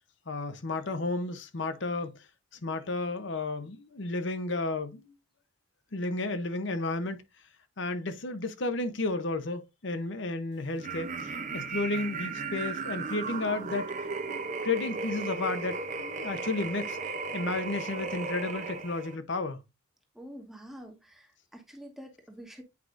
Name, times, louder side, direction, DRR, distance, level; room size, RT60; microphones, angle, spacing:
voice 1, 0.3-2.2 2.6-5.1 5.9-7.2 7.8-13.9 14.3-17.0 17.3-19.6, left 2 dB, 60° left, 0.8 m, -32 dB
sound 1, 10.8-19.2, right 4 dB, 35° right, 0.7 m, -35 dB
voice 2, 20.1-22.6, equal, ahead, 1.1 m, -47 dB
8.3 x 4.8 x 2.5 m
head